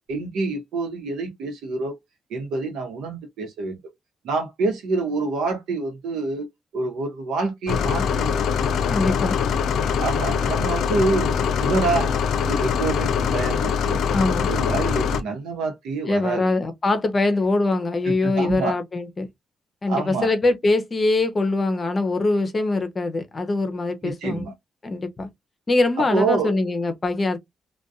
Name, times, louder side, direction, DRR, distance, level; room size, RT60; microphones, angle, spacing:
voice 1, 0.1-2.0 2.3-3.8 4.2-8.4 10.0-12.1 12.4-14.1 14.5-16.5 18.1-18.8 19.9-20.3 24.0-24.5 26.0-26.5, right 3 dB, 85° right, 0.9 m, -27 dB
sound 1, 7.7-15.2, left 7 dB, 80° left, 0.3 m, -23 dB
voice 2, 8.9-9.4 14.1-14.5 16.1-19.3 19.8-24.5 24.8-25.3 25.7-27.4, left 2 dB, 40° left, 0.6 m, -23 dB
2.6 x 2.2 x 2.3 m
supercardioid pair, 55°, 0 cm